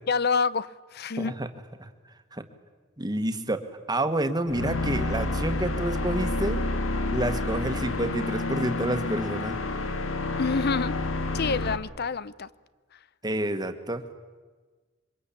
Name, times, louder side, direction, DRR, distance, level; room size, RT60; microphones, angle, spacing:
voice 1, 0.1-1.3 10.4-10.9 11.3-12.5, left 5 dB, 50° left, 18 dB, 0.7 m, -27 dB
voice 2, 1.2-1.5 1.8-1.9 2.3-2.4 3.0-6.6 7.1-9.6 13.2-14.0, right 1 dB, 20° right, 7 dB, 1.7 m, -29 dB
sound 1, 4.5-11.8, left 2 dB, 85° left, 1.8 m, -29 dB
27.5 x 24.5 x 8.7 m, 1.4 s
head